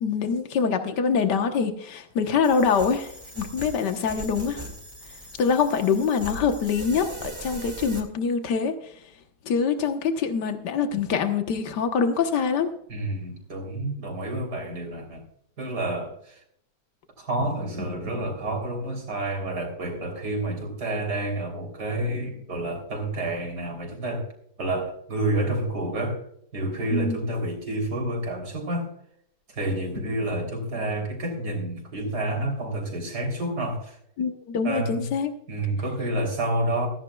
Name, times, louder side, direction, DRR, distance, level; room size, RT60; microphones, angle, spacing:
voice 1, 0.0-4.7 5.4-8.7 9.5-12.7 26.9-27.2 34.2-35.3, left 6 dB, 80° left, 6 dB, 1.8 m, -24 dB
sound 1, 2.4-8.0, right 1 dB, 15° right, 2.4 m, -39 dB
voice 2, 12.9-15.2 15.6-16.4 17.2-24.3 24.6-26.2 26.5-28.9 29.5-34.0 34.6-35.1 35.5-36.9, right 1 dB, 70° right, 2 dB, 4.0 m, -29 dB
16.0 x 14.5 x 2.3 m, 0.68 s
omnidirectional pair, 1.8 m